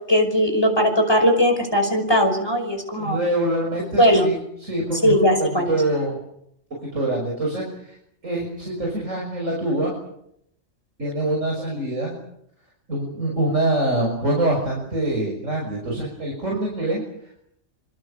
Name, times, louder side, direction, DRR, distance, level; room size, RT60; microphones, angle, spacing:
voice 1, 0.1-3.2 4.0-4.3 5.0-5.8, equal, 20° left, 5 dB, 5.5 m, -19 dB
voice 2, 3.0-6.2 6.9-7.9 8.2-9.9 11.0-12.2 12.9-17.0, right 1 dB, 90° right, -1 dB, 6.7 m, -25 dB
26.5 x 26.0 x 7.2 m, 0.76 s
omnidirectional pair, 1.3 m